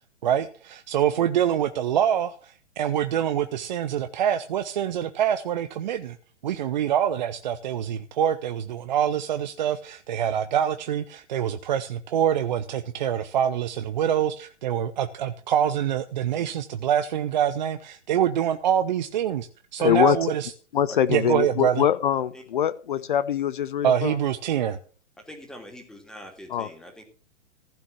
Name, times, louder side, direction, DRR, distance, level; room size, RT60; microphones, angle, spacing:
voice 1, 0.2-6.2 6.4-20.5 21.1-21.8 23.8-24.8, right 9 dB, 40° right, 10 dB, 0.8 m, -25 dB
voice 2, 19.8-20.2 20.7-24.2 26.5-26.7, left 9 dB, 45° left, 17 dB, 0.7 m, -23 dB
voice 3, 25.2-27.0, left 1 dB, ahead, 3 dB, 2.9 m, -43 dB
15.0 x 6.2 x 8.5 m, 0.41 s
figure-of-eight pair, 120°, 35 cm